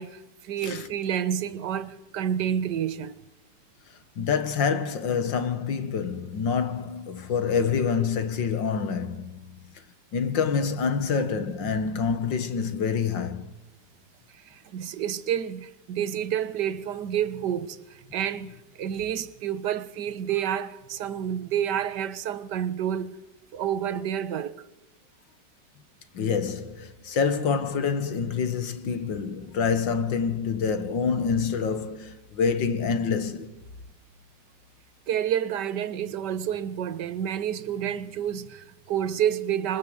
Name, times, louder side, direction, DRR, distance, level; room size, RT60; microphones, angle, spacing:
voice 1, 0.0-3.2 14.5-23.2 23.5-24.5 35.1-39.8, right 9 dB, 70° right, 1.7 m, -29 dB
voice 2, 4.2-9.6 10.1-13.5 26.1-33.6, left 6 dB, 85° left, 2.3 m, -27 dB
25.5 x 24.0 x 8.0 m
omnidirectional pair, 2.0 m